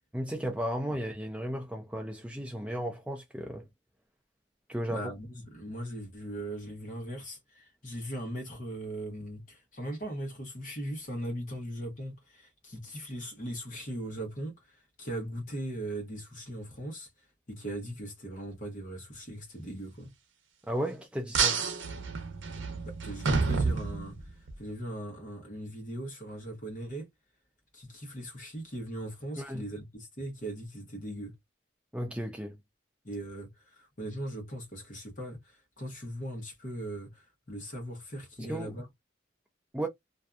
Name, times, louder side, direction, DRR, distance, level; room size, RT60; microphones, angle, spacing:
voice 1, 0.1-3.7 4.7-5.1 20.7-21.7 29.4-29.6 31.9-32.5 38.4-38.8 39.7-39.9, right 1 dB, 5° right, 0.4 m, -34 dB
voice 2, 4.9-14.6 15.0-17.1 17.5-20.1 22.8-24.2 24.6-27.1 27.7-31.3 33.0-38.9, right 1 dB, 40° left, 0.9 m, -39 dB
sound 1, 21.3-24.5, right 4 dB, 80° right, 0.6 m, -29 dB
2.6 x 2.3 x 2.3 m
head